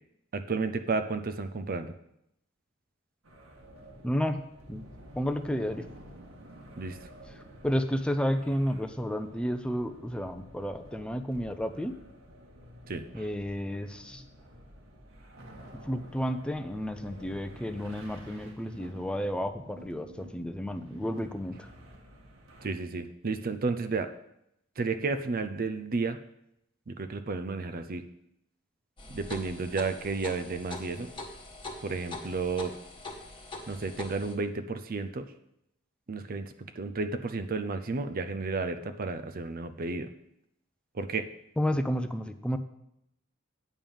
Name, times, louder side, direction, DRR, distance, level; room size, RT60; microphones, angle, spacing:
voice 1, 0.3-1.9 6.8-7.1 12.9-13.3 22.6-24.1 24.8-26.2 26.9-28.0 29.1-31.1 31.8-32.7 33.7-35.3 36.1-40.1 40.9-41.3, right 4 dB, 45° right, 9 dB, 0.5 m, -32 dB
sound 1, 3.2-22.7, equal, 75° right, 1.7 m, -51 dB
voice 2, 4.0-4.4 4.7-4.9 5.2-5.8 7.6-11.9 13.1-14.2 15.9-21.7 41.6-42.6, equal, 5° left, 7 dB, 0.5 m, -31 dB
sound 2, 29.0-34.3, left 2 dB, 25° left, 1.4 m, -43 dB
9.1 x 5.4 x 7.0 m, 0.79 s
head